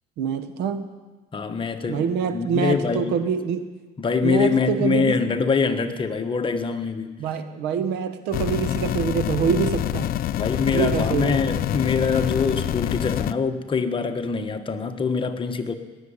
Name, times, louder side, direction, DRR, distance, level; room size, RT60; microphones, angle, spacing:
voice 1, 0.2-0.9 1.9-3.7 4.2-5.2 7.2-10.1 10.7-11.4, right 7 dB, 90° right, 10 dB, 1.2 m, -25 dB
voice 2, 1.3-3.2 4.0-7.2 10.3-15.8, left 5 dB, 30° left, 6 dB, 1.3 m, -24 dB
sound 1, 8.3-13.3, left 12 dB, 60° left, 0.5 m, -26 dB
18.0 x 7.3 x 9.8 m, 1.3 s
cardioid pair, 110°, 17 cm